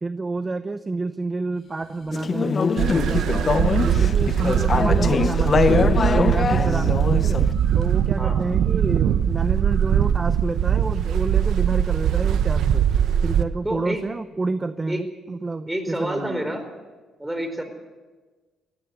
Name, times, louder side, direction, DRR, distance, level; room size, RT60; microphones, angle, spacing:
voice 1, 0.0-5.9 6.1-7.5 7.7-12.9 13.2-16.6, right 3 dB, 25° right, 11 dB, 0.8 m, -29 dB
sound 1, 1.5-8.1, left 2 dB, 55° left, 5.1 m, -48 dB
Conversation / Chatter, 2.1-7.5, left 5 dB, 40° left, 0.9 m, -23 dB
sound 2, 2.8-13.4, right 9 dB, 75° right, 1.0 m, -21 dB
voice 2, 8.2-8.5 13.6-14.0 14.9-15.0 15.7-16.6 17.2-17.6, right 1 dB, 10° right, 7 dB, 4.4 m, -28 dB
18.0 x 16.0 x 9.7 m, 1.3 s
cardioid pair, 90°, 0 cm